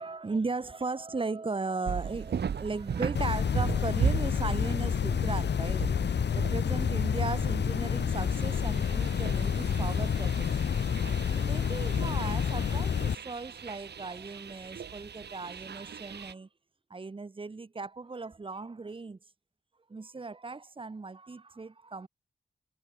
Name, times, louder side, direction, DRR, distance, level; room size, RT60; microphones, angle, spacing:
voice 1, 0.0-5.9 6.3-10.7 11.3-16.5 16.9-19.2 19.9-22.1, right 3 dB, 30° right, 7.3 m, -37 dB
sound 1, 1.8-16.3, right 7 dB, 75° right, 4.7 m, -38 dB
sound 2, 3.1-13.1, left 7 dB, 85° left, 3.3 m, -29 dB
wide cardioid pair, 165°, 17 cm